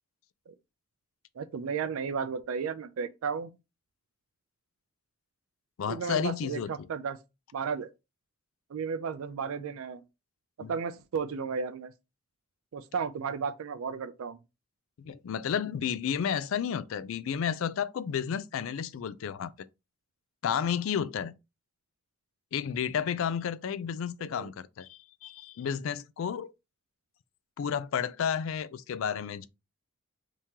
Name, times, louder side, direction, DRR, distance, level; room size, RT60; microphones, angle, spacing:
voice 1, 1.4-3.6 5.9-7.2 7.5-7.9 8.7-10.0 10.7-11.9 12.7-14.4 24.2-24.5, right 6 dB, 80° right, 0.4 m, -34 dB
voice 2, 5.8-6.9 10.6-10.7 15.0-19.5 20.4-21.3 22.5-26.5 27.6-29.5, left 7 dB, 70° left, 0.3 m, -32 dB
3.6 x 2.9 x 2.8 m
head